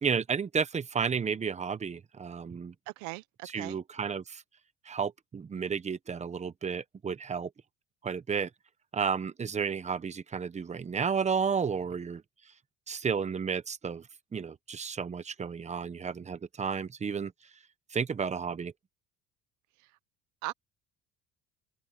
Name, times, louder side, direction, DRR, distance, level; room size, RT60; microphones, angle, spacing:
voice 1, 0.0-2.7 3.4-4.4 4.9-7.5 8.0-8.5 8.9-12.2 12.9-14.0 14.3-17.3 17.9-18.7, right 6 dB, 25° right, 1.0 m, -32 dB
voice 2, 2.9-3.8 20.4-20.5, right 21 dB, 80° right, 0.8 m, -39 dB
open air
cardioid pair, 120°, 29 cm